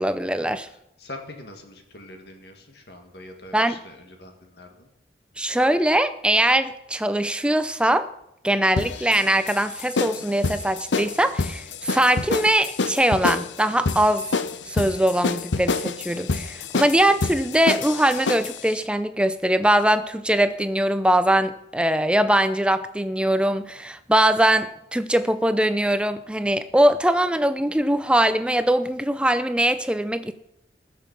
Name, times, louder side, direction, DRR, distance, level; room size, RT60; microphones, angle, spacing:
voice 1, 0.0-0.7 3.5-3.8 5.4-8.1 8.4-14.3 14.7-30.3, right 1 dB, 5° right, 11 dB, 0.6 m, -21 dB
voice 2, 0.6-4.9, left 2 dB, 65° left, 3 dB, 1.9 m, -43 dB
sound 1, 8.8-18.6, left 4 dB, 85° left, 0.7 m, -27 dB
20.5 x 6.8 x 5.3 m, 0.80 s
head